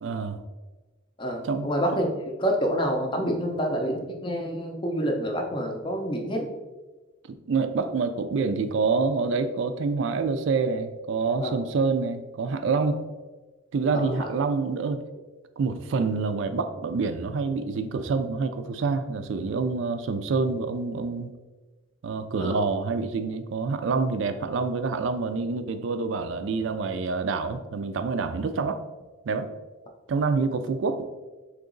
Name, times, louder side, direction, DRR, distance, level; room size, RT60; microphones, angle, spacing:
voice 1, 0.0-0.4 1.4-1.7 7.3-13.0 13.7-15.0 15.6-21.3 22.0-28.8 29.3-29.5 30.1-31.1, right 4 dB, 65° right, 9 dB, 0.3 m, -27 dB
voice 2, 1.2-6.5 11.4-11.6 13.9-14.3 22.4-22.6, equal, 25° left, 2 dB, 0.5 m, -28 dB
3.8 x 3.0 x 3.7 m, 1.2 s
head